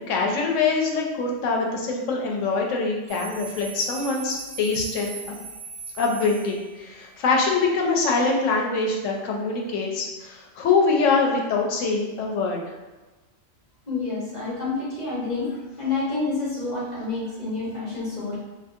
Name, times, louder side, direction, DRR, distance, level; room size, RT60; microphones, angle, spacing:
voice 1, 0.1-5.4 6.0-12.6, left 4 dB, 80° left, 0 dB, 0.9 m, -24 dB
sound 1, 3.1-7.1, right 5 dB, 75° right, 1.1 m, -40 dB
voice 2, 13.9-15.5 15.8-18.4, left 3 dB, 40° left, -7 dB, 0.8 m, -28 dB
2.6 x 2.5 x 2.4 m, 1.1 s
omnidirectional pair, 1.3 m